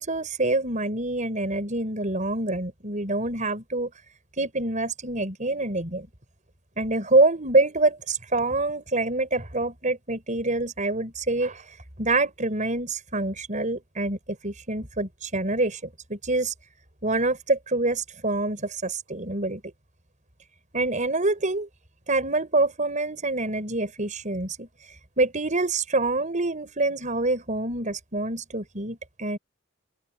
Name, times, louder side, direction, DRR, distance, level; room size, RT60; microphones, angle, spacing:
voice 1, 0.0-3.9 4.4-6.1 6.8-11.6 12.0-16.5 17.0-19.6 20.7-21.7 22.1-24.7 25.2-29.4, right 2 dB, 40° right, 5.4 m, -26 dB
open air
head